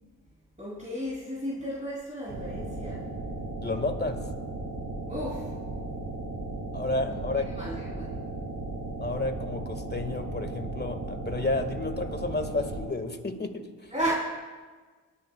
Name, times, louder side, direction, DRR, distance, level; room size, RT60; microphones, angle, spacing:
voice 1, 0.6-3.0 5.1-5.5 7.1-8.1 13.9-14.1, equal, 15° right, -6 dB, 3.1 m, -34 dB
sound 1, 2.3-12.9, right 2 dB, 50° right, 2.1 m, -36 dB
voice 2, 3.6-4.2 6.7-7.5 9.0-13.9, left 2 dB, 25° left, 6 dB, 1.7 m, -31 dB
22.0 x 10.5 x 2.3 m, 1.4 s
supercardioid pair, 40°, 43 cm